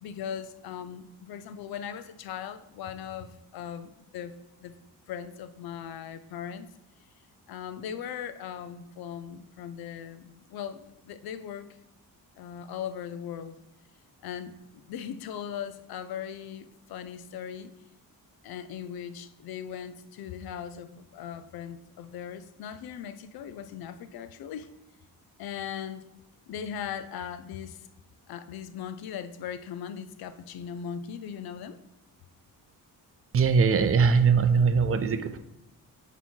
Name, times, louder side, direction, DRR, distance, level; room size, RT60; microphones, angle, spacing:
voice 1, 0.0-4.3 4.6-4.7 5.1-6.7 7.5-11.8 12.4-13.6 14.2-17.7 18.4-24.7 25.4-26.1 26.5-27.8 28.3-31.8, left 8 dB, 85° left, 0.5 m, -39 dB
voice 2, 33.3-35.4, right 5 dB, 40° right, 0.5 m, -21 dB
9.1 x 3.1 x 4.4 m
cardioid pair, 135°, 36 cm